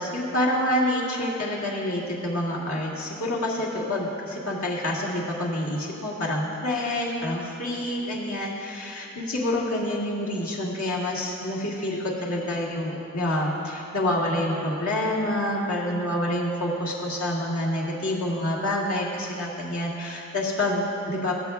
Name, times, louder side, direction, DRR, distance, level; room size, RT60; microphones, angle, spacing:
voice 1, 0.0-21.3, left 1 dB, 80° left, -5 dB, 1.8 m, -27 dB
16.5 x 7.9 x 2.4 m, 2.7 s
head